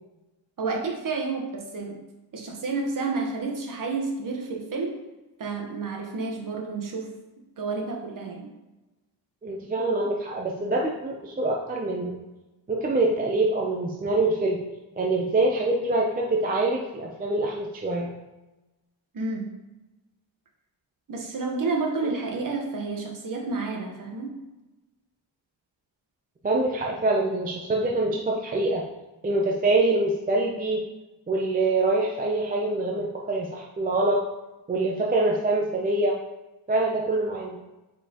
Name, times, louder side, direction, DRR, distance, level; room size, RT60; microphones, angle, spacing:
voice 1, 0.6-1.9 2.3-4.9 5.4-7.1 7.6-8.5 19.1-19.5 21.1-24.4, right 3 dB, 45° right, 1 dB, 1.1 m, -30 dB
voice 2, 9.4-12.1 12.7-14.6 15.0-18.1 22.0-22.1 26.4-28.8 29.2-30.8 31.3-34.2 34.7-36.2 36.7-37.6, right 2 dB, 20° right, -1 dB, 0.4 m, -25 dB
6.5 x 5.1 x 2.9 m, 1.1 s
wide cardioid pair, 170°, 46 cm